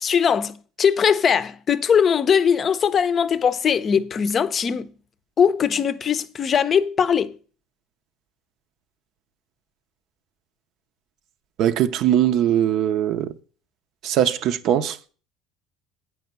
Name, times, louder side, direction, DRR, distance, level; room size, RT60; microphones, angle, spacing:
voice 1, 0.0-4.9 5.4-7.4, left 7 dB, 35° left, 0.5 m, -20 dB
voice 2, 11.6-13.3 14.0-15.0, right 10 dB, 60° right, 0.6 m, -20 dB
8.6 x 4.7 x 6.6 m
supercardioid pair, 95°, 0 cm